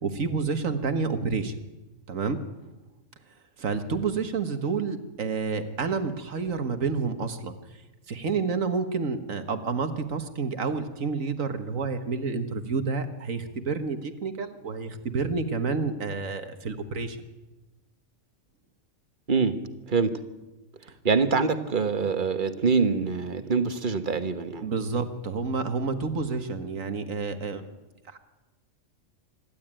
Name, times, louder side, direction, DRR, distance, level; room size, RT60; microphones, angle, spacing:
voice 1, 0.0-1.6 2.1-2.4 3.6-17.2 24.6-27.7 28.1-28.2, right 4 dB, 75° right, 8 dB, 1.9 m, -29 dB
voice 2, 21.0-24.7, right 5 dB, 40° right, 9 dB, 1.4 m, -24 dB
26.0 x 12.0 x 8.9 m, 1.1 s
omnidirectional pair, 1.4 m